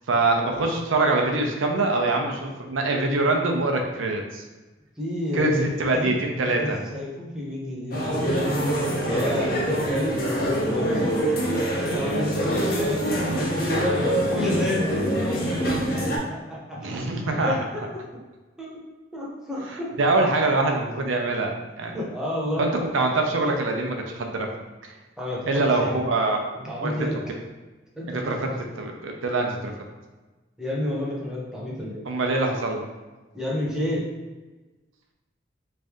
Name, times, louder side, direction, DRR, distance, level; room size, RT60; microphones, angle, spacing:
voice 1, 0.1-4.4 5.3-6.8 16.8-17.5 20.0-22.0 22.6-24.5 24.8-24.9 25.5-26.4 26.8-27.0 28.1-28.5 28.8-29.7 32.1-32.8, right 2 dB, 85° right, 2 dB, 0.6 m, -24 dB
voice 2, 5.0-6.1 6.5-8.6 9.0-11.0 11.9-14.1 14.3-15.6 15.9-17.0 17.3-18.0 18.6-18.7 19.1-20.1 21.9-22.7 25.2-26.1 26.5-27.4 28.0-28.5 30.6-32.1 33.3-34.0, left 1 dB, 5° right, -6 dB, 0.8 m, -30 dB
sound 1, 7.9-16.2, equal, 50° left, 0.7 m, -25 dB
3.2 x 2.6 x 3.5 m, 1.2 s
head